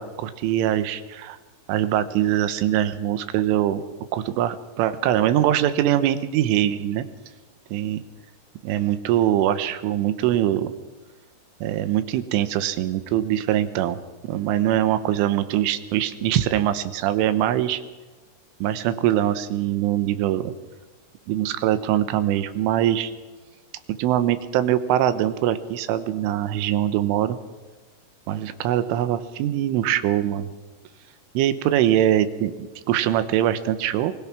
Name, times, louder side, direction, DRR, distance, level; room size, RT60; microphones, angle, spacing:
voice 1, 0.0-1.4 1.7-3.8 4.1-7.1 7.7-8.0 8.6-10.7 11.6-17.8 18.6-20.5 21.3-23.1 24.0-27.4 28.3-30.5 31.3-34.1, right 12 dB, 80° right, 12 dB, 3.5 m, -23 dB
26.0 x 21.0 x 6.1 m, 1.2 s
omnidirectional pair, 5.7 m